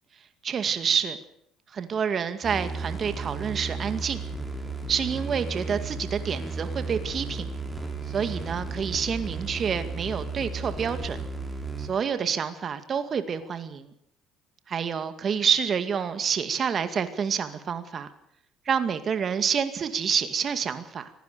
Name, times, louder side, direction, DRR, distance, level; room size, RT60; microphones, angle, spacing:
voice 1, 0.4-1.2 1.7-4.2 4.9-7.5 8.1-11.2 11.8-13.9 14.7-18.1 18.7-21.1, right 7 dB, 45° right, 10 dB, 2.1 m, -28 dB
sound 1, 2.4-11.9, right 3 dB, 10° right, 6.4 m, -34 dB
24.5 x 16.5 x 6.9 m, 0.74 s
supercardioid pair, 95°, 0 cm